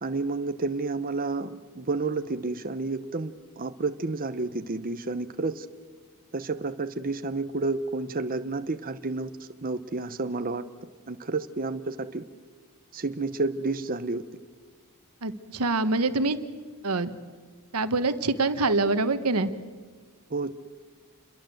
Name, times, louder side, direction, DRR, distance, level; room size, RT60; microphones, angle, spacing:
voice 1, 0.0-5.7 6.3-10.6 11.1-12.2 12.9-14.2 20.3-20.5, right 3 dB, 40° right, 10 dB, 0.9 m, -30 dB
voice 2, 15.2-16.4 16.8-17.1 17.7-19.5, right 3 dB, 90° right, 11 dB, 1.4 m, -25 dB
29.0 x 22.0 x 7.9 m, 1.5 s
head